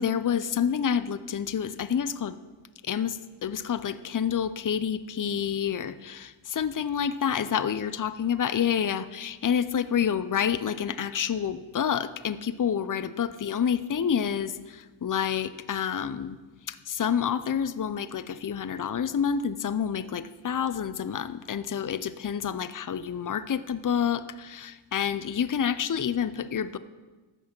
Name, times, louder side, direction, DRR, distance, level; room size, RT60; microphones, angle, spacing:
voice 1, 0.0-2.4 2.8-16.4 16.7-26.8, left 8 dB, 40° left, 14 dB, 0.6 m, -28 dB
14.0 x 6.3 x 6.0 m, 1.3 s
wide cardioid pair, 60°, 50 cm